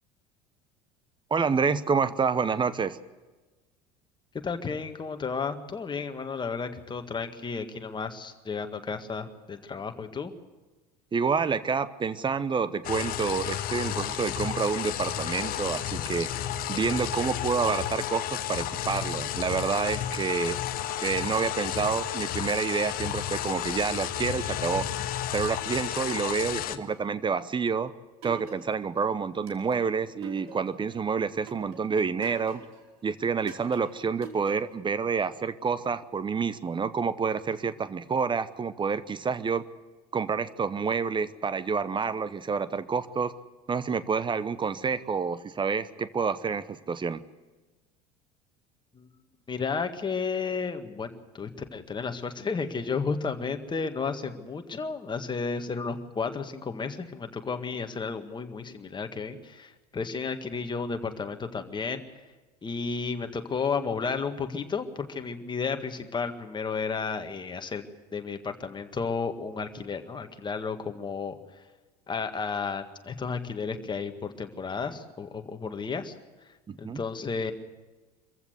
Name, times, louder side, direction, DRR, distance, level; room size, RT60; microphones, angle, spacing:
voice 1, 1.3-3.0 11.1-16.3 16.7-20.6 21.0-24.9 25.3-27.9 28.2-32.7 33.0-39.7 40.1-43.3 43.7-47.2 76.7-77.0, right 5 dB, 25° right, 15 dB, 0.9 m, -28 dB
voice 2, 4.3-10.3 26.7-26.8 48.9-49.1 49.5-62.2 62.6-67.8 68.1-71.7 72.1-76.1 76.4-77.5, left 5 dB, 20° left, 7 dB, 1.8 m, -33 dB
sound 1, 12.8-26.8, left 11 dB, 45° left, 1.1 m, -32 dB
sound 2, 28.2-29.0 29.5-30.9 31.5-32.9 33.5-34.9, right 5 dB, 65° right, 3.4 m, -46 dB
24.5 x 15.0 x 8.1 m, 1.2 s
figure-of-eight pair, 70°, 21 cm